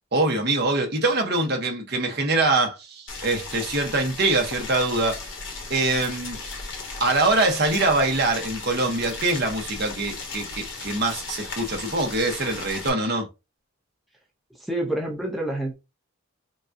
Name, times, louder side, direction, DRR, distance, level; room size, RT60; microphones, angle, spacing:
voice 1, 0.1-5.2 5.7-6.4 7.0-13.3, right 2 dB, 50° right, 1.0 m, -24 dB
Boiling, 3.1-12.9, left 3 dB, 60° left, 1.2 m, -36 dB
voice 2, 14.5-15.7, right 1 dB, ahead, 0.6 m, -28 dB
5.1 x 2.3 x 2.6 m
head